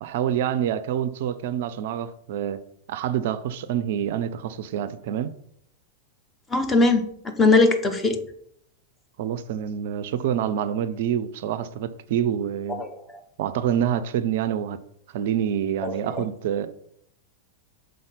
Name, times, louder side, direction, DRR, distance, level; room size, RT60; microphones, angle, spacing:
voice 1, 0.0-2.6 2.9-5.3 9.2-12.8 13.4-14.8 15.1-16.7, right 9 dB, 55° right, 0.4 m, -27 dB
voice 2, 6.5-8.2 12.8-12.9 15.8-16.2, left 3 dB, 15° left, 0.9 m, -20 dB
5.5 x 3.9 x 5.0 m
figure-of-eight pair, 90°, 0 cm